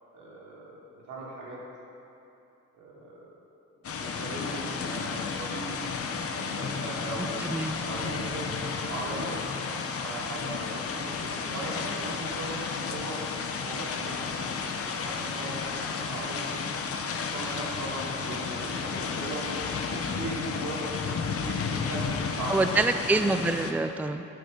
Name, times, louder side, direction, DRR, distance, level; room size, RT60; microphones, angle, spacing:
voice 1, 0.1-1.6 2.7-3.3 4.0-5.7 6.2-7.5 7.8-9.4 10.0-13.2 13.6-16.4 17.0-19.4 19.9-22.5, right 2 dB, 85° right, -5 dB, 3.1 m, -39 dB
sound 1, 3.8-23.7, left 5 dB, 50° left, 1.0 m, -32 dB
voice 2, 7.2-7.8 22.5-24.3, right 3 dB, 5° right, 9 dB, 0.4 m, -26 dB
12.0 x 8.2 x 5.8 m, 2.9 s
cardioid pair, 90°, 30 cm